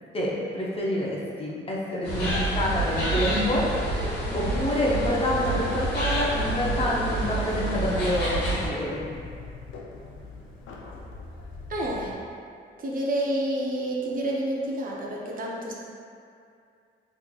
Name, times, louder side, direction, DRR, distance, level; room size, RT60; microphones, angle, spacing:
voice 1, 0.1-9.1, left 1 dB, 30° left, -5 dB, 0.7 m, -27 dB
sound 1, 2.0-8.7, right 1 dB, 55° left, 1.3 m, -28 dB
sound 2, 5.6-12.2, left 3 dB, 85° left, 0.5 m, -43 dB
voice 2, 11.7-12.2 12.8-15.7, right 1 dB, 45° right, -2 dB, 0.6 m, -29 dB
3.7 x 2.9 x 2.3 m, 2.4 s
cardioid pair, 90°, 20 cm